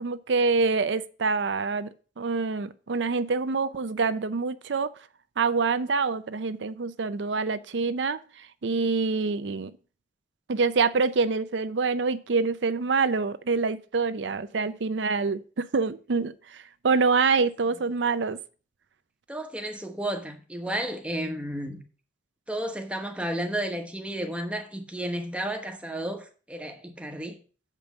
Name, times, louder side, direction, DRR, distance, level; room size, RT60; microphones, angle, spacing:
voice 1, 0.0-1.9 2.2-4.9 5.4-9.7 10.5-18.4, right 4 dB, 85° right, 0.6 m, -26 dB
voice 2, 19.3-21.8 22.5-27.4, right 1 dB, 5° right, 1.2 m, -32 dB
7.4 x 5.3 x 6.5 m
head